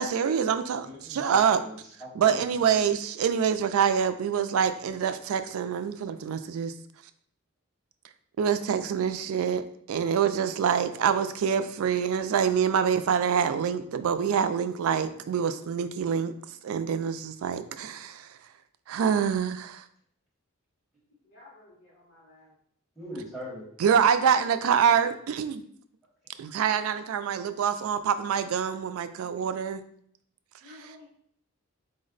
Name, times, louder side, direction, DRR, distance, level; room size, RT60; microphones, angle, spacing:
voice 1, 0.0-1.6 2.1-6.7 8.4-16.3 16.6-18.3 18.9-19.8 23.8-25.6 26.4-29.8, right 7 dB, 75° right, 11 dB, 0.3 m, -26 dB
voice 2, 0.8-2.7 23.0-23.7 29.2-29.3, equal, ahead, -7 dB, 1.2 m, -41 dB
voice 3, 21.2-22.5 27.5-27.6 30.6-31.1, left 2 dB, 50° left, -8 dB, 1.1 m, -52 dB
4.1 x 2.1 x 3.8 m, 0.65 s
head